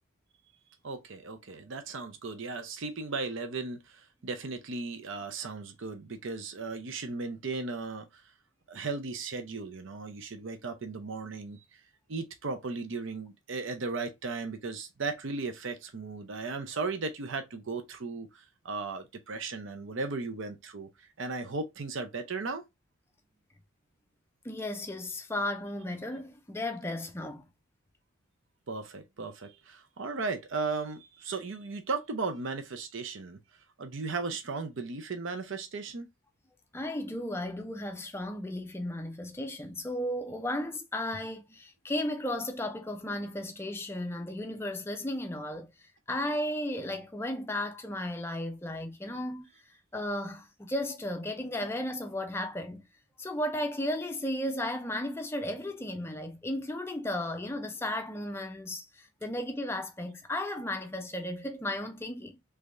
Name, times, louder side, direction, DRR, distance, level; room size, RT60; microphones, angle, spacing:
voice 1, 0.8-8.2 8.7-11.8 12.1-22.6 28.7-33.4 33.8-36.1, right 4 dB, 60° right, 0.6 m, -36 dB
voice 2, 24.4-27.5 36.7-45.7 46.1-49.5 49.9-52.9 53.2-62.4, left 1 dB, 10° left, 0.4 m, -34 dB
3.3 x 3.3 x 2.5 m
head